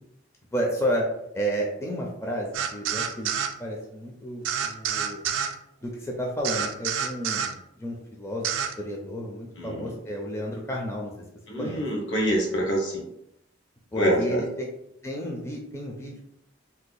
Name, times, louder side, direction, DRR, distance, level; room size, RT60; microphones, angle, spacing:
voice 1, 0.5-1.1 1.3-3.3 3.6-5.3 5.8-11.1 11.6-11.8 13.9-14.7 15.0-16.2, equal, 15° left, -1 dB, 0.4 m, -31 dB
sound 1, 2.5-3.5 4.5-5.5 6.4-7.5 8.4-8.7, right 8 dB, 85° right, 0.3 m, -28 dB
voice 2, 9.6-9.9 11.5-13.1 13.9-14.4, equal, 70° left, -1 dB, 1.0 m, -26 dB
2.7 x 2.3 x 3.8 m, 0.79 s
head